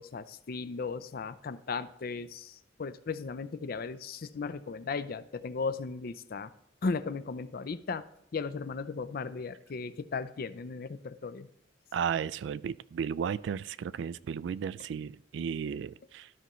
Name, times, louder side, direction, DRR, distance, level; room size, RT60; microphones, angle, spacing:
voice 1, 0.0-6.5 6.8-8.0 8.3-11.5, left 4 dB, 55° left, 13 dB, 0.5 m, -36 dB
voice 2, 11.9-16.3, right 7 dB, 70° right, 17 dB, 0.3 m, -34 dB
12.5 x 5.5 x 3.1 m, 0.79 s
head